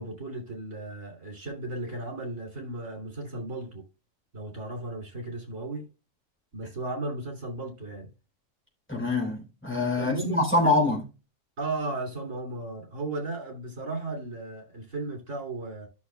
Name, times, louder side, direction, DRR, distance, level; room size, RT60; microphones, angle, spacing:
voice 1, 0.0-3.8 4.3-5.9 6.5-8.1 10.0-10.7 11.6-15.9, right 2 dB, 65° right, 3.1 m, -35 dB
voice 2, 8.9-11.0, left 2 dB, 10° left, 3.3 m, -25 dB
13.0 x 6.3 x 2.2 m
omnidirectional pair, 1.4 m